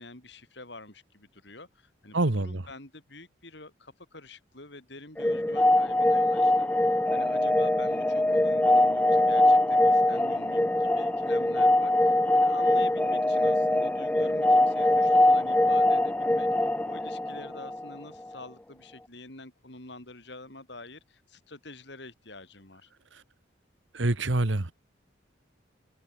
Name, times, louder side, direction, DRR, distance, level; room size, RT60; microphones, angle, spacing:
voice 1, 0.0-2.2 2.4-6.7 7.1-16.5 16.9-22.9, left 2 dB, 60° left, 4.3 m, -46 dB
voice 2, 2.1-2.7 23.1-23.2 23.9-24.7, right 2 dB, 75° right, 1.4 m, -26 dB
sound 1, 5.2-17.9, left 1 dB, 5° left, 0.4 m, -23 dB
head